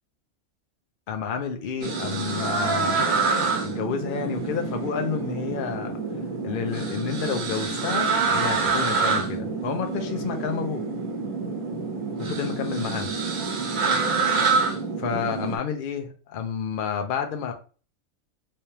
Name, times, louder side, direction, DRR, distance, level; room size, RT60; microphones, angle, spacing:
voice 1, 1.1-3.2 3.6-6.0 6.4-10.8 12.2-13.1 15.0-17.5, left 7 dB, 55° left, 5 dB, 0.6 m, -30 dB
sound 1, 1.8-15.6, right 4 dB, 75° right, 1.3 m, -27 dB
3.3 x 3.2 x 2.8 m, 0.37 s
omnidirectional pair, 1.4 m